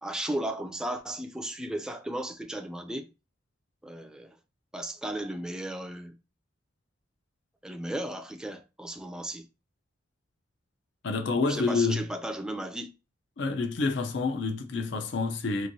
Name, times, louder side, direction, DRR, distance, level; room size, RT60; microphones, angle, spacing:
voice 1, 0.0-3.1 3.8-4.4 4.7-6.2 7.6-9.5 11.4-12.9, right 1 dB, 5° right, 0.3 m, -35 dB
voice 2, 11.0-12.0 13.4-15.7, left 4 dB, 60° left, 0.5 m, -28 dB
3.0 x 2.6 x 2.6 m
head